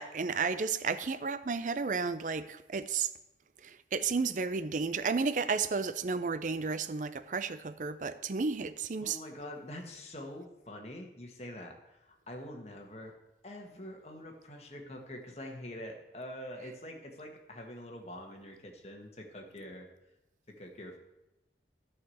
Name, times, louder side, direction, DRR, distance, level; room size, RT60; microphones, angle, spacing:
voice 1, 0.0-3.1 3.6-9.2, right 4 dB, 45° right, 0.5 m, -32 dB
voice 2, 9.0-13.1 13.4-19.9 20.5-21.0, left 1 dB, 35° left, 1.6 m, -45 dB
11.0 x 4.9 x 7.8 m
head